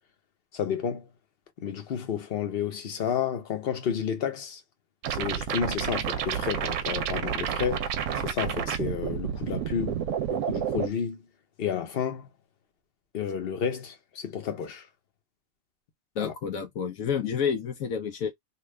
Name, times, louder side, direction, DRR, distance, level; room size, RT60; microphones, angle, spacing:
voice 1, 0.5-1.1 1.6-4.6 5.1-10.0 10.3-11.2 11.6-12.3 13.1-14.9 16.2-16.3, left 8 dB, 50° left, 0.9 m, -31 dB
sound 1, 5.0-10.9, right 8 dB, 70° right, 0.9 m, -30 dB
voice 2, 16.2-18.3, left 7 dB, 80° left, 1.0 m, -29 dB
3.0 x 2.3 x 3.2 m
omnidirectional pair, 1.4 m